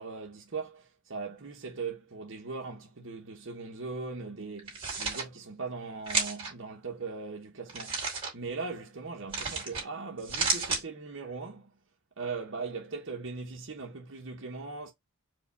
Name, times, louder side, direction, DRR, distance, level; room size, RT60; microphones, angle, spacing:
voice 1, 0.0-8.1 8.3-11.7 12.2-14.9, right 4 dB, 60° right, 0.9 m, -39 dB
sound 1, 4.6-5.2 6.1-6.5 7.7-8.3 9.3-9.8 10.2-10.8, right 4 dB, 25° right, 2.3 m, -31 dB
4.8 x 2.2 x 4.0 m
head